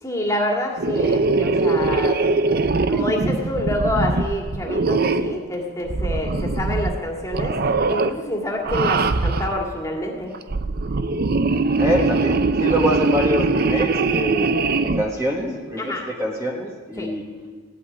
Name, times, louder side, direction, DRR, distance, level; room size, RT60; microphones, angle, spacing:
voice 1, 0.0-2.2 2.9-7.6 7.9-10.3 15.8-16.0 17.0-17.1, left 1 dB, 15° left, 0 dB, 2.2 m, -27 dB
sound 1, 0.8-5.4 5.9-7.0 7.3-8.1 8.6-9.6 10.3-15.0, right 3 dB, 45° right, 0.6 m, -21 dB
voice 2, 11.8-17.2, equal, 15° right, -2 dB, 1.6 m, -25 dB
17.0 x 8.4 x 9.7 m, 1.5 s
head